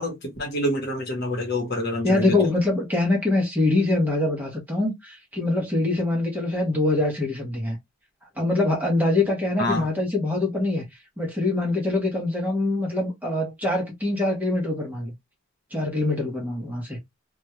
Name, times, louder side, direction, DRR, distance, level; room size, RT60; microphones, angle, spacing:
voice 1, 0.0-2.5 9.6-9.9, left 1 dB, 50° left, 1.0 m, -27 dB
voice 2, 2.0-7.8 8.4-10.9 11.2-15.1 15.7-17.0, left 2 dB, 10° right, 0.8 m, -24 dB
2.3 x 2.2 x 2.9 m
head